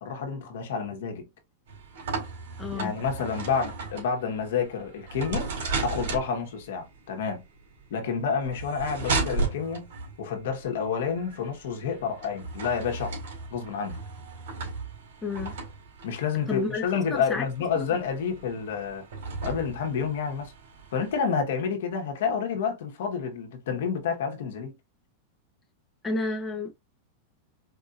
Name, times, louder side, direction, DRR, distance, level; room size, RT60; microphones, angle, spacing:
voice 1, 0.0-1.3 2.7-5.5 5.8-7.4 7.9-9.9 10.2-13.2 13.5-14.0 16.0-19.1 19.4-20.5 20.9-24.7, left 6 dB, 75° left, 1.2 m, -29 dB
sound 1, 1.7-21.2, right 3 dB, 80° right, 2.0 m, -36 dB
voice 2, 2.6-2.9 15.2-15.5 16.5-17.5 17.8-17.9 26.0-26.8, left 3 dB, 10° left, 0.8 m, -31 dB
4.8 x 2.7 x 2.5 m
supercardioid pair, 135°, 0 cm